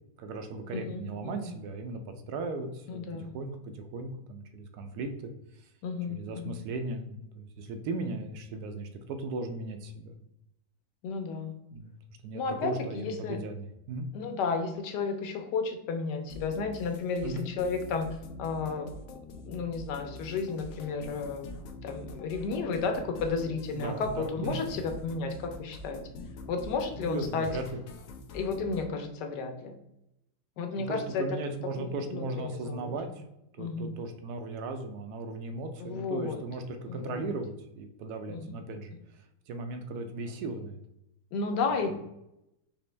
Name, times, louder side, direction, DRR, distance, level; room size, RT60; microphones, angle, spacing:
voice 1, 0.2-2.0 2.3-5.3 6.1-10.2 11.7-11.9 12.2-14.1 17.2-17.5 23.7-24.6 27.0-27.6 30.8-33.2 33.6-40.8 41.9-42.0, right 2 dB, 75° right, 6 dB, 1.1 m, -37 dB
voice 2, 0.7-1.5 2.9-3.4 5.8-6.6 11.0-11.5 12.3-13.4 14.1-19.0 19.5-26.0 26.5-27.5 28.3-29.7 30.6-31.3 31.8-32.9 33.6-33.9 35.8-36.4 36.9-37.3 38.3-38.5 41.3-42.0, left 4 dB, 85° left, 5 dB, 1.3 m, -33 dB
sound 1, 16.3-28.9, left 2 dB, 70° left, 0.8 m, -45 dB
4.2 x 3.0 x 3.2 m, 0.84 s
omnidirectional pair, 1.8 m